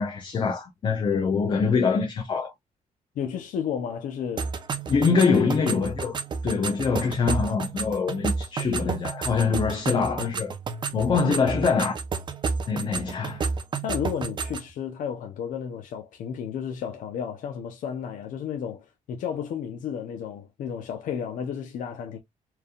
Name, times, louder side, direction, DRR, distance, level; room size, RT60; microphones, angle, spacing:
voice 1, 0.0-2.5 4.9-6.2 6.4-10.5 10.9-12.0 12.7-13.4, left 5 dB, 35° left, 0.8 m, -24 dB
voice 2, 3.2-4.5 4.9-5.2 13.8-22.2, left 8 dB, 75° left, 0.8 m, -32 dB
sound 1, 4.4-14.7, right 5 dB, 35° right, 0.7 m, -31 dB
4.6 x 3.4 x 2.3 m
cardioid pair, 165°, 14 cm